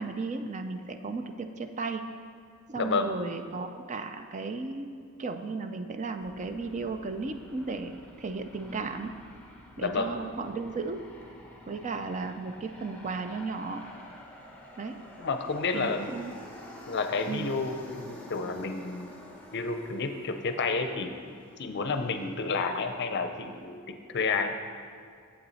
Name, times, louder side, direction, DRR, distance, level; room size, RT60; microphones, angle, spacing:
voice 1, 0.0-2.1 2.7-9.1 9.8-11.0 11.7-13.8 14.8-15.0 15.7-16.3 17.3-17.5, right 3 dB, 35° right, 7 dB, 0.4 m, -35 dB
voice 2, 2.8-3.1 9.8-10.2 15.2-16.1 16.9-19.1 19.5-21.1 21.6-24.6, left 4 dB, 55° left, 7 dB, 0.6 m, -30 dB
Aircraft, 6.2-23.6, left 1 dB, 5° left, 0.9 m, -49 dB
8.6 x 7.8 x 4.1 m, 2.2 s
head